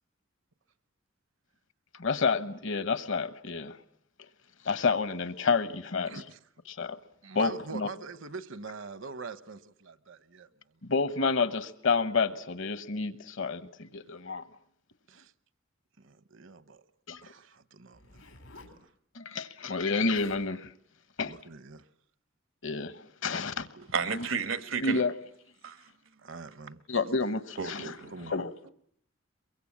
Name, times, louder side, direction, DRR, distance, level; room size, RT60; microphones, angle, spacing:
voice 1, 2.0-3.8 4.6-6.2 6.7-7.0 7.3-7.9 10.8-14.4 17.1-17.2 19.1-20.7 21.2-21.3 22.6-23.7 24.1-24.2 24.8-25.1 26.9-27.9 28.3-28.5, left 4 dB, 65° left, 1.1 m, -29 dB
voice 2, 6.1-6.4 7.2-10.5 15.1-15.3 16.0-16.8 17.2-18.2 18.6-18.7 21.2-21.8 23.7-23.9 26.2-26.8 28.1-28.3, right 4 dB, 65° right, 1.0 m, -43 dB
Zipper (clothing), 17.9-18.8 19.8-19.9 20.1-20.5 21.2-21.4, left 3 dB, 90° left, 4.1 m, -52 dB
voice 3, 23.9-25.0 25.6-25.9 27.6-28.1, right 6 dB, 85° right, 1.4 m, -32 dB
23.0 x 23.0 x 8.7 m
head